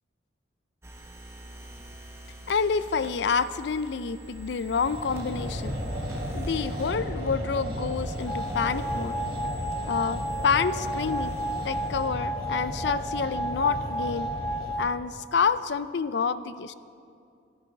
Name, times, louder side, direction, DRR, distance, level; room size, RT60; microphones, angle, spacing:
sound 1, 0.8-12.1, right 1 dB, 15° right, 1.0 m, -45 dB
voice 1, 2.5-5.8 6.3-9.2 9.9-11.3 11.6-14.3 14.8-16.7, left 5 dB, 70° left, 15 dB, 0.4 m, -28 dB
sound 2, 4.8-14.8, equal, 50° right, 2.0 m, -34 dB
sound 3, 8.3-14.9, right 1 dB, 20° left, 0.8 m, -33 dB
12.5 x 11.0 x 5.9 m, 2.4 s
head